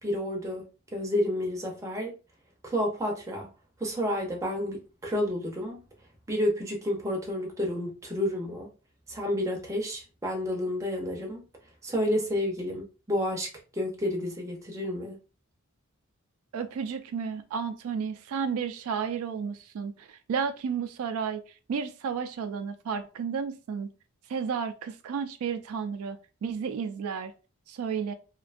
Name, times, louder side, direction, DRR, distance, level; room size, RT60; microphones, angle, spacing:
voice 1, 0.0-0.6 0.9-2.1 2.6-3.5 3.8-5.8 6.3-8.7 9.1-11.4 11.8-15.2, left 1 dB, 15° right, 0.5 m, -30 dB
voice 2, 16.5-21.4 21.7-23.9 24.3-27.3 27.7-28.1, right 6 dB, 80° right, 0.3 m, -32 dB
2.5 x 2.2 x 2.4 m
head